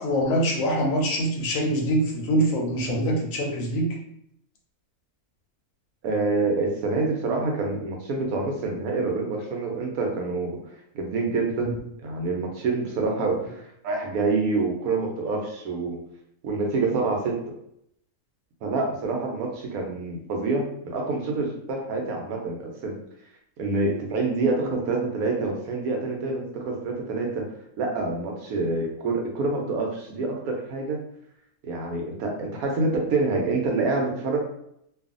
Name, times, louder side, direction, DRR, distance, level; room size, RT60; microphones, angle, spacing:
voice 1, 0.0-3.9 11.6-11.7, equal, 70° left, 0 dB, 1.1 m, -24 dB
voice 2, 6.0-10.6 10.9-16.0 16.4-17.4 18.6-23.0 23.6-27.5 27.8-31.0 31.6-34.4, right 3 dB, 85° right, 1 dB, 1.1 m, -27 dB
2.6 x 2.4 x 2.4 m, 0.73 s
omnidirectional pair, 1.5 m